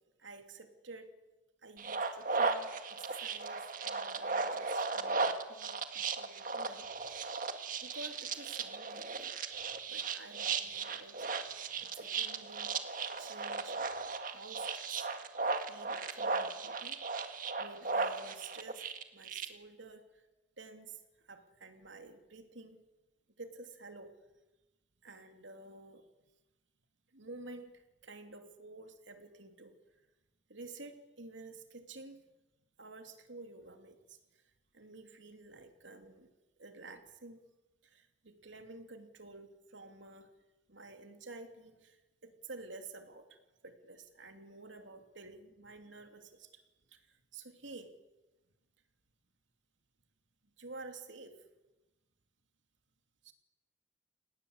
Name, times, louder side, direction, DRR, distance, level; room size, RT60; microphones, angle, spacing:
voice 1, 0.2-1.1 1.6-7.2 7.8-9.3 9.6-12.7 13.2-14.0 14.2-15.1 15.7-17.0 17.6-20.2 20.6-22.8 23.4-24.2 25.0-26.1 27.1-30.1 30.5-32.2 32.8-34.4 34.7-36.3 36.6-37.5 37.8-40.3 40.7-46.6 46.9-47.9 50.6-51.4 53.2-53.3, right 3 dB, 80° right, 6 dB, 2.9 m, -51 dB
sound 1, 1.8-19.5, right 4 dB, 45° right, 1.9 m, -36 dB
29.5 x 18.5 x 8.1 m, 1.1 s
head